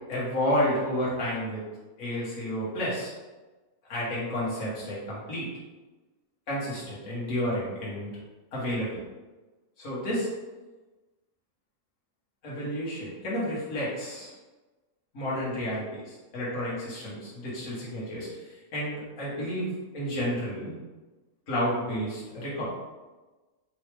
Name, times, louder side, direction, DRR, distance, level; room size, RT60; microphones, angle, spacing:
voice 1, 0.1-1.6 2.0-3.1 3.9-5.5 6.5-8.1 8.5-9.0 9.8-10.3 12.4-14.3 15.1-20.8 21.5-22.7, equal, 70° left, -7 dB, 1.8 m, -31 dB
4.7 x 3.2 x 3.3 m, 1.2 s
omnidirectional pair, 1.5 m